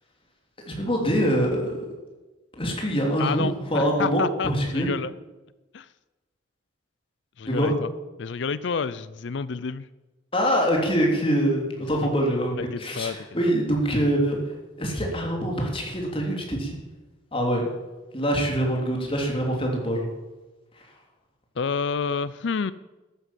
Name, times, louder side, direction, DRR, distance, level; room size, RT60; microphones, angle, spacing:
voice 1, 0.6-1.9 2.5-4.9 7.4-7.7 10.3-16.8 17.3-17.7 18.1-20.1 20.7-20.9, equal, 25° left, 0 dB, 3.3 m, -24 dB
voice 2, 3.2-5.1 5.7-5.9 7.4-7.9 8.2-9.9 12.6-13.2 21.6-22.7, left 5 dB, 65° left, 17 dB, 0.5 m, -29 dB
13.5 x 11.5 x 7.5 m, 1.1 s
head